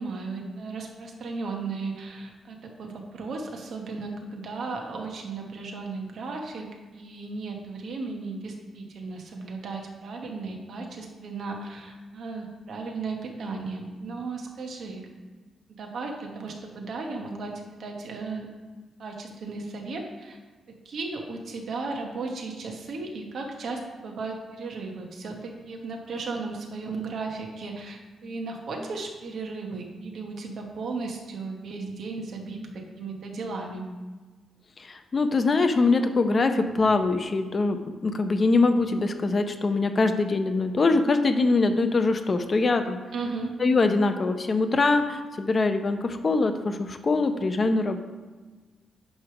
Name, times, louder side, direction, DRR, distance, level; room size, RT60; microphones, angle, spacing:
voice 1, 0.0-15.1 15.8-18.5 19.0-20.4 20.8-33.8 43.1-43.5, right 3 dB, 55° right, 1 dB, 1.2 m, -35 dB
voice 2, 34.8-37.8 38.0-43.0 43.6-48.0, left 3 dB, 30° left, 7 dB, 0.6 m, -23 dB
9.5 x 3.3 x 5.9 m, 1.4 s
wide cardioid pair, 155°, 0 cm